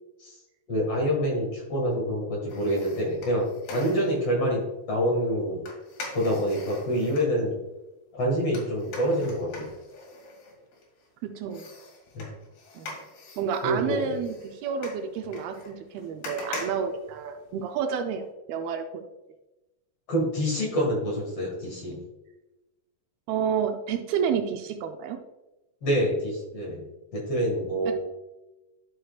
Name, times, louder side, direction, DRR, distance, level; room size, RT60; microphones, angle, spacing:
voice 1, 0.7-5.6 6.1-7.6 8.1-9.7 12.1-12.3 13.6-14.2 20.1-22.0 25.8-27.9, equal, 45° left, -2 dB, 2.3 m, -27 dB
sound 1, 2.5-4.3 5.7-7.3 8.5-11.1 11.5-17.7 18.1-18.2, left 2 dB, 75° left, 3.9 m, -42 dB
voice 2, 11.2-11.7 12.8-13.0 13.4-19.0 23.3-25.2 27.9-28.0, right 7 dB, 80° right, 6 dB, 2.4 m, -30 dB
11.5 x 6.4 x 2.4 m, 1.0 s
omnidirectional pair, 4.5 m